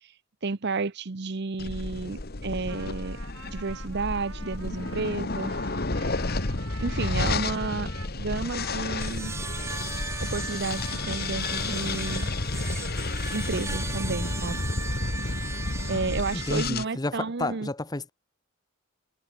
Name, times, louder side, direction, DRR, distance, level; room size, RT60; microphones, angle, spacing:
voice 1, 0.4-3.2 3.5-5.5 6.8-9.4 10.2-12.3 13.3-14.6 15.9-17.7, right 4 dB, 55° right, 0.8 m, -31 dB
sound 1, 1.6-16.8, left 2 dB, 50° left, 1.5 m, -31 dB
Trumpet, 2.5-13.4, right 5 dB, 70° right, 5.8 m, -47 dB
sound 2, 9.0-16.7, right 4 dB, 15° right, 0.6 m, -38 dB
voice 2, 16.5-18.1, left 2 dB, 20° left, 0.8 m, -31 dB
head